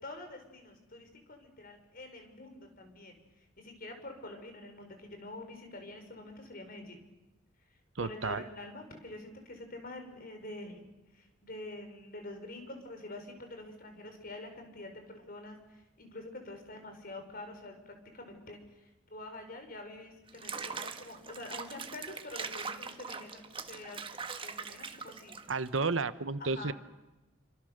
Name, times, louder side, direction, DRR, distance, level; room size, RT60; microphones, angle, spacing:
voice 1, 0.0-3.2 3.6-7.0 8.0-10.8 11.1-23.4 23.7-24.0 24.4-25.3 26.4-26.7, left 2 dB, 45° left, 5 dB, 5.1 m, -46 dB
voice 2, 8.0-8.4 25.5-26.7, right 4 dB, 75° right, 13 dB, 1.1 m, -32 dB
Water / Bathtub (filling or washing), 20.3-25.8, right 5 dB, 25° right, 1.4 m, -42 dB
28.5 x 25.5 x 6.7 m, 1.0 s
head